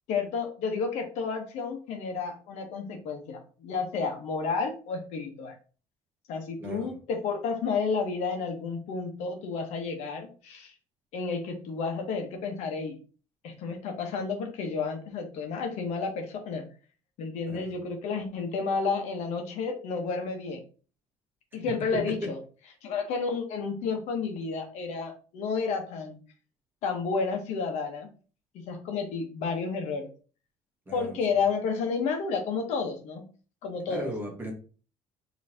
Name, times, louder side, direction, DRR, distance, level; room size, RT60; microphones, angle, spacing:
voice 1, 0.1-5.5 6.3-10.7 11.1-12.9 13.4-16.6 17.2-20.6 21.5-22.4 22.8-26.2 26.8-28.1 28.5-30.1 30.9-33.2 33.6-34.1, left 5 dB, 65° left, 4 dB, 1.2 m, -31 dB
voice 2, 6.6-6.9 17.5-17.7 30.9-31.2 33.9-34.5, right 1 dB, 15° right, 0 dB, 1.6 m, -37 dB
5.3 x 3.1 x 2.9 m, 0.37 s
cardioid pair, 145°, 12 cm